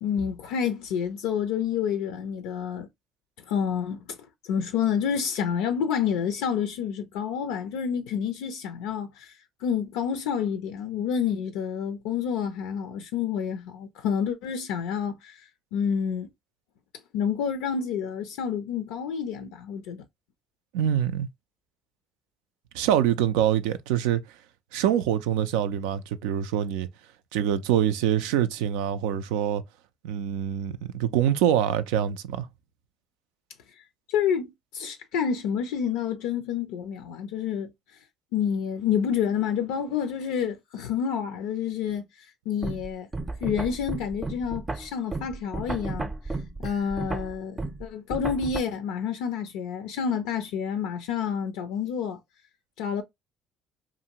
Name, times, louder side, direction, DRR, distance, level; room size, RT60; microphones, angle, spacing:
voice 1, 0.0-2.9 3.5-4.2 4.4-9.4 9.6-15.4 15.7-16.3 17.1-20.0 34.1-37.7 38.3-42.0 42.5-43.1 43.4-46.1 46.6-52.2 52.8-53.0, left 7 dB, 80° left, 0.4 m, -28 dB
voice 2, 20.7-21.3 22.7-24.2 24.7-26.9 27.3-29.6 30.0-32.5, right 10 dB, 85° right, 0.3 m, -25 dB
sound 1, 42.6-48.6, right 3 dB, 25° right, 0.5 m, -33 dB
2.5 x 2.5 x 2.8 m
supercardioid pair, 65°, 0 cm